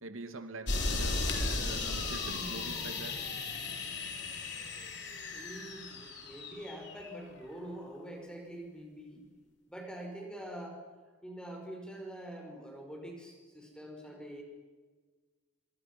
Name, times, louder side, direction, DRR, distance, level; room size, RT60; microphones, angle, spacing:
voice 1, 0.0-3.3, right 2 dB, 90° right, 8 dB, 2.5 m, -45 dB
sound 1, 0.7-7.1, left 3 dB, 55° left, 4.1 m, -36 dB
voice 2, 5.3-9.3 9.7-10.8 11.2-14.4, right 1 dB, 5° left, 1 dB, 5.4 m, -45 dB
25.5 x 25.5 x 6.2 m, 1.4 s
head